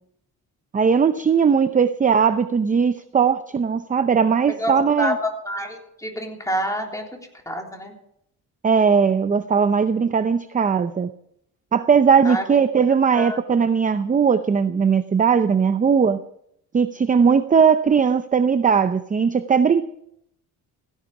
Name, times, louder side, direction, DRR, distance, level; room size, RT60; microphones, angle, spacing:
voice 1, 0.7-5.1 8.6-11.1 11.7-16.2 16.7-19.8, right 6 dB, 20° right, 11 dB, 0.6 m, -19 dB
voice 2, 4.5-7.1 7.5-7.9 12.2-12.6 13.2-13.4, equal, 10° left, 1 dB, 3.6 m, -28 dB
17.0 x 16.5 x 4.9 m, 0.73 s
cardioid pair, 140°, 37 cm